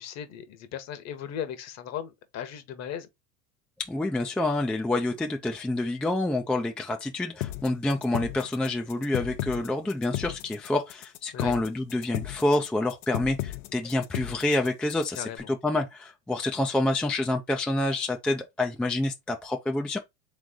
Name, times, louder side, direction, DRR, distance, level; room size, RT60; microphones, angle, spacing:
voice 1, 0.0-3.1 11.3-11.5 15.2-15.4, left 9 dB, 40° left, 1.1 m, -37 dB
voice 2, 3.8-20.0, left 2 dB, 5° left, 0.3 m, -28 dB
sound 1, 7.4-15.4, left 15 dB, 70° left, 0.8 m, -34 dB
3.6 x 3.2 x 3.7 m
hypercardioid pair, 110°, 40 cm